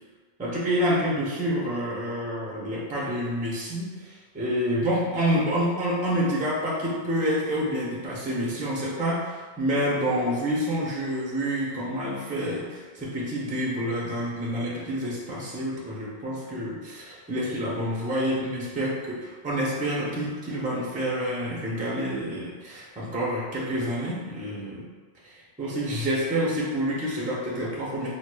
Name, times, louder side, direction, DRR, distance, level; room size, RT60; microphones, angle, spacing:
voice 1, 0.4-24.9 25.2-25.3 25.6-28.1, equal, 10° right, -6 dB, 0.5 m, -28 dB
4.7 x 2.3 x 2.2 m, 1.4 s
omnidirectional pair, 1.1 m